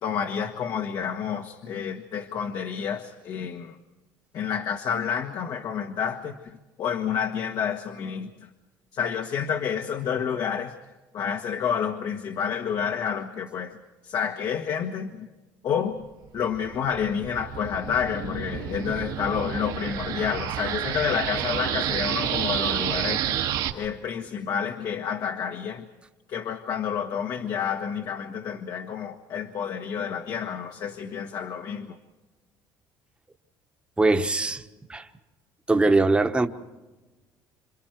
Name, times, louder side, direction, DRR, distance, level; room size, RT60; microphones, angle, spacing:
voice 1, 0.0-3.8 4.3-8.5 8.9-10.7 11.1-13.8 14.0-15.3 15.6-16.1 16.3-23.4 23.7-25.9 26.3-32.0, left 7 dB, 60° left, 1.5 m, -29 dB
sound 1, 16.4-23.7, right 10 dB, 75° right, 2.1 m, -29 dB
voice 2, 34.0-34.6 34.9-35.1 35.7-36.5, right 2 dB, 15° right, 1.2 m, -21 dB
28.0 x 26.0 x 4.6 m
cardioid pair, 110°, 8 cm